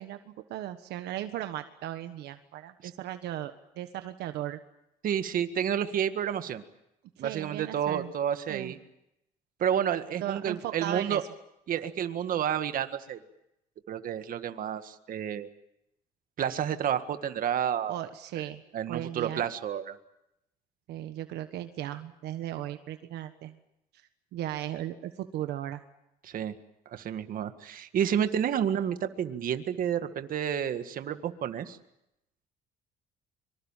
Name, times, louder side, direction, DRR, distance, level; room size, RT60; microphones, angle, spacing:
voice 1, 0.0-4.6 7.2-8.1 8.5-8.7 10.2-11.2 17.9-18.6 18.9-19.4 20.9-23.6 24.3-25.8, right 13 dB, 80° right, 8 dB, 1.4 m, -36 dB
voice 2, 5.0-6.6 7.2-8.8 9.6-11.2 11.7-13.2 13.9-15.5 16.4-18.0 18.7-19.9 26.2-26.5 26.9-31.8, right 9 dB, 55° right, 9 dB, 1.8 m, -30 dB
25.0 x 24.0 x 7.4 m, 0.84 s
cardioid pair, 110°, 17 cm